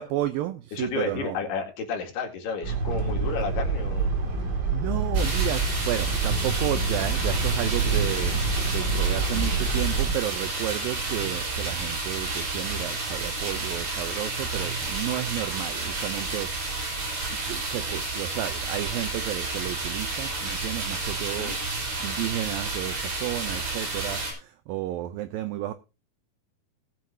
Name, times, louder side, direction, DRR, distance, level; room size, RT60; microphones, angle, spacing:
voice 1, 0.0-1.4 4.7-8.4 8.7-16.9 17.3-21.6 22.0-25.7, right 14 dB, 80° right, 2.1 m, -32 dB
voice 2, 0.7-4.1 21.4-21.6, left 5 dB, 75° left, 4.1 m, -32 dB
sound 1, 2.6-10.1, right 4 dB, 35° right, 1.8 m, -26 dB
sound 2, 5.1-24.3, right 3 dB, 60° right, 6.3 m, -31 dB
19.0 x 7.6 x 2.7 m
omnidirectional pair, 4.7 m